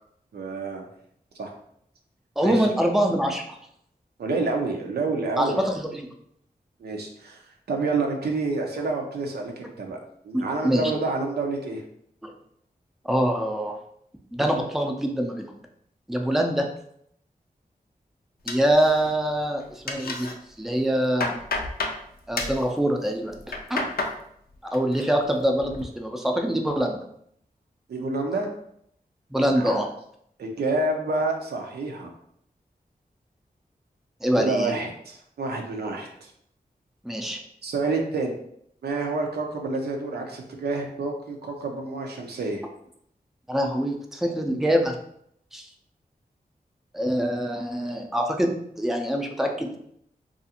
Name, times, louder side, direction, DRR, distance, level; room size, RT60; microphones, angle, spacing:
voice 1, 0.3-0.9 1.4-1.5 2.4-2.7 4.2-5.6 6.8-7.4 7.7-10.0 10.2-11.8 27.9-28.5 29.6-29.7 30.4-32.1 34.4-36.3 37.6-38.4 38.8-42.6, right 3 dB, 90° right, 2 dB, 0.5 m, -28 dB
voice 2, 2.4-3.6 5.4-6.1 10.6-10.9 12.2-12.3 13.0-13.8 14.3-15.5 16.1-16.7 18.5-20.3 20.6-21.3 22.3-23.4 23.7-23.8 24.7-27.0 29.3-29.9 34.2-34.7 37.0-37.4 43.5-45.0 45.5-45.7 46.9-49.7, equal, ahead, 3 dB, 0.4 m, -24 dB
sound 1, 18.5-19.3 19.6-20.3 20.8-22.0 22.3-22.6 23.3-24.2 24.5-25.0 25.4-25.8, left 3 dB, 70° left, 0.4 m, -31 dB
2.4 x 2.4 x 2.7 m, 0.70 s
cardioid pair, 55°, 16 cm